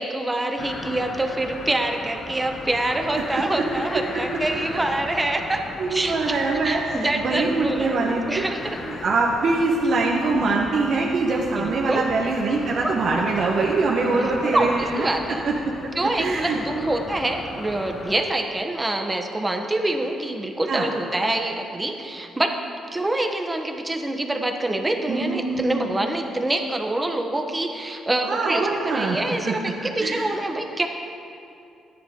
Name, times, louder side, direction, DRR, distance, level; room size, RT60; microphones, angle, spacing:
voice 1, 0.0-5.6 5.9-6.4 6.6-8.8 11.5-12.1 12.8-12.9 14.1-15.4 15.9-22.6 22.9-30.9, right 1 dB, 15° right, 4 dB, 1.2 m, -26 dB
sound 1, 0.6-18.2, left 3 dB, 50° left, 1.1 m, -37 dB
voice 2, 5.8-6.8 7.2-8.4 9.0-15.1 15.4-15.9 16.2-16.9 20.7-20.9 25.1-25.9 28.2-29.2 29.4-30.3, right 3 dB, 60° right, -2 dB, 1.2 m, -23 dB
13.5 x 10.0 x 3.8 m, 2.6 s
cardioid pair, 90°, 0 cm